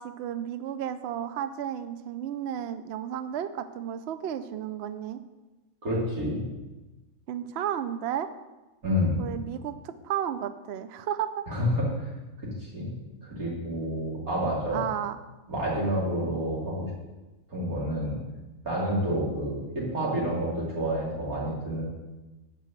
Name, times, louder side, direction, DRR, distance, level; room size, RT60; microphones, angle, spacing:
voice 1, 0.0-5.2 7.3-8.3 9.2-11.4 14.7-15.2, right 10 dB, 65° right, 11 dB, 0.7 m, -33 dB
voice 2, 5.8-6.4 8.8-9.3 11.5-12.1 12.4-14.8 15.5-16.9 17.5-18.2 18.6-21.8, equal, 80° right, -5 dB, 3.2 m, -29 dB
7.7 x 5.2 x 7.3 m, 1.1 s
omnidirectional pair, 1.5 m